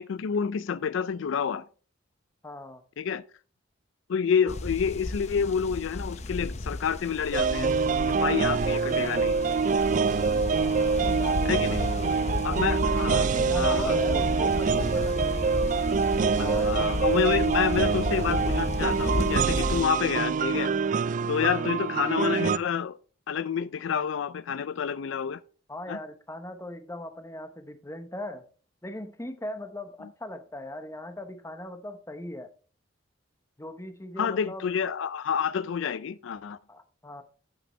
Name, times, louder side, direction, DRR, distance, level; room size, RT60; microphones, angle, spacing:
voice 1, 0.0-1.6 3.0-3.2 4.1-7.7 8.2-9.3 11.4-11.8 12.4-13.3 13.5-14.0 16.4-20.7 21.3-23.0 23.3-25.4 25.9-26.0 34.2-36.6, left 7 dB, 75° left, 0.4 m, -28 dB
voice 2, 2.4-2.8 10.5-15.3 16.4-16.7 21.4-21.7 25.7-28.4 28.8-32.5 33.6-34.7 36.7-37.2, left 1 dB, 15° left, 1.0 m, -39 dB
sound 1, 4.5-19.8, left 2 dB, 35° left, 0.7 m, -33 dB
sound 2, 7.3-22.6, right 5 dB, 40° right, 0.3 m, -25 dB
8.6 x 8.6 x 3.2 m
head